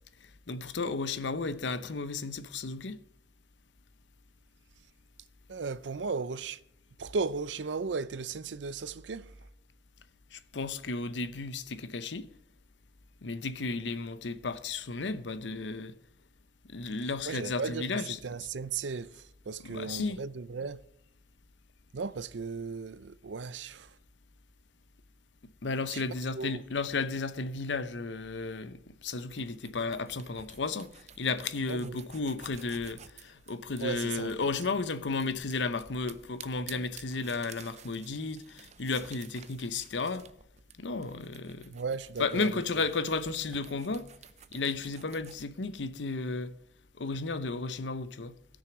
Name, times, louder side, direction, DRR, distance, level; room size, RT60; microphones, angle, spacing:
voice 1, 0.5-3.0 10.3-12.3 13.2-15.9 16.7-18.2 19.6-20.2 25.6-40.2 40.8-41.7 42.2-44.1 44.5-46.5 47.0-48.4, left 3 dB, 85° left, 0.8 m, -33 dB
voice 2, 5.5-6.6 7.0-9.3 17.2-20.8 21.9-24.0 25.9-26.0 26.3-26.6 31.7-32.0 33.8-34.3 41.7-42.6, right 4 dB, 90° right, 0.6 m, -36 dB
sound 1, 29.2-45.4, right 8 dB, 40° right, 0.6 m, -53 dB
16.5 x 6.4 x 6.0 m
head